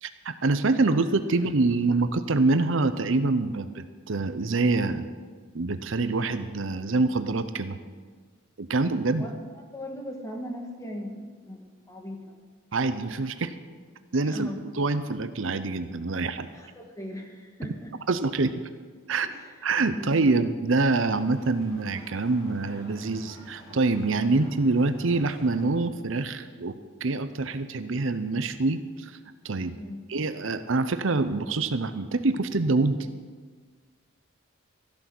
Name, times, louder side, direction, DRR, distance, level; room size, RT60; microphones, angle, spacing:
voice 1, 0.0-5.0 5.5-7.8 8.6-9.3 12.7-13.5 14.1-16.5 18.1-18.5 19.1-19.3 19.6-29.2 29.4-29.7 30.1-33.0, right 3 dB, 65° right, 11 dB, 0.7 m, -25 dB
voice 2, 9.7-12.4 14.3-14.7 16.5-18.0 19.3-19.5 19.9-20.2 29.7-30.0, equal, 15° left, 2 dB, 1.7 m, -39 dB
sound 1, 20.7-25.7, equal, 85° left, 4.2 m, -47 dB
14.0 x 12.0 x 6.1 m, 1.5 s
head